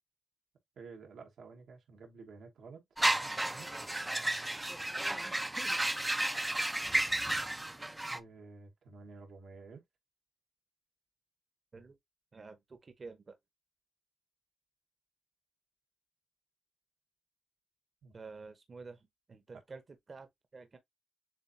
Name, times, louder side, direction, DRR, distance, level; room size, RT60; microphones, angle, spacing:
voice 1, 0.8-3.7 8.1-9.8 18.0-18.1, right 4 dB, 80° right, 1.4 m, -52 dB
sound 1, 3.0-8.2, right 1 dB, 15° right, 0.5 m, -32 dB
voice 2, 12.3-13.4 18.1-19.0 19.3-19.8 20.1-20.8, right 4 dB, 40° right, 0.9 m, -49 dB
7.4 x 2.6 x 2.7 m
cardioid pair, 95°, 0 cm